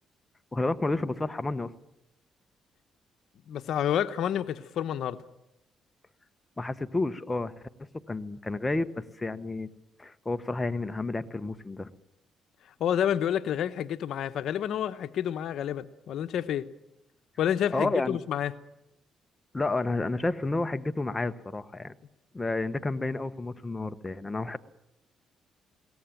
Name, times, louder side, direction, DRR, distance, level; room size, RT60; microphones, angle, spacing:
voice 1, 0.5-1.7 6.6-7.6 8.1-9.7 10.0-11.9 17.7-18.2 19.5-21.9 22.3-24.6, left 2 dB, 20° left, 1.0 m, -30 dB
voice 2, 3.5-5.2 12.8-16.7 17.4-18.5, left 10 dB, 75° left, 0.9 m, -29 dB
22.0 x 18.0 x 9.1 m
cardioid pair, 90°, 0 cm